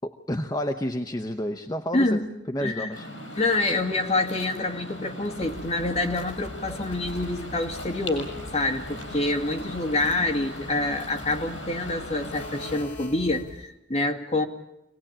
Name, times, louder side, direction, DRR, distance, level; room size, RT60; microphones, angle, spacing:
voice 1, 0.0-2.2 2.5-3.1, left 1 dB, 20° left, 6 dB, 0.9 m, -30 dB
voice 2, 1.9-2.3 2.6-3.0 3.3-14.4, left 2 dB, 35° left, 2 dB, 2.2 m, -27 dB
Waves surf, 2.9-12.8, left 1 dB, 85° left, 6.3 m, -39 dB
sound 1, 5.4-13.7, left 1 dB, 70° left, 2.9 m, -43 dB
26.5 x 18.5 x 8.8 m, 0.91 s
head